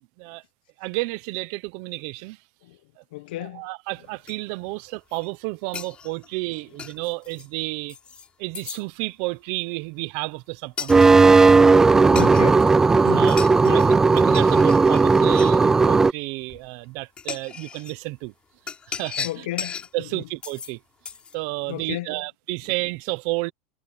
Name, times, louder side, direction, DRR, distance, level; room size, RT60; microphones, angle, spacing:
voice 1, 0.8-2.4 3.0-3.1 3.4-8.0 8.4-11.2 13.1-18.3 18.9-19.5 19.9-20.8 21.3-23.5, right 24 dB, 55° right, 0.9 m, -31 dB
voice 2, 3.1-3.6 11.8-12.7 13.0-13.9 18.9-19.8 20.1-20.2 21.7-22.2, left 16 dB, 90° left, 1.1 m, -33 dB
sound 1, 4.3-4.4 4.9-5.3 5.7-7.5 7.9-8.3 8.5-8.8 10.8-11.1 12.1-12.7 13.0-13.9 14.2-15.6 16.5-16.6 17.2-18.0 18.7-19.9 20.4-20.7 21.0-21.3, left 6 dB, 20° left, 4.0 m, -36 dB
sound 2, 10.9-16.1, right 4 dB, 10° right, 0.4 m, -15 dB
supercardioid pair, 160°, 5 cm